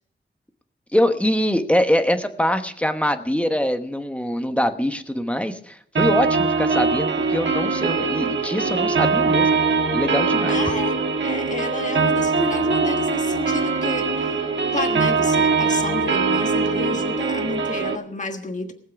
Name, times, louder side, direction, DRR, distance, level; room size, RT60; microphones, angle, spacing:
voice 1, 0.9-9.6 9.9-10.6, equal, 5° left, 7 dB, 1.1 m, -23 dB
sound 1, 6.0-18.0, right 4 dB, 60° right, 1.5 m, -22 dB
voice 2, 10.5-14.4 14.7-18.7, left 3 dB, 35° left, 5 dB, 1.4 m, -30 dB
19.5 x 7.5 x 6.0 m, 0.63 s
wide cardioid pair, 115°, 21 cm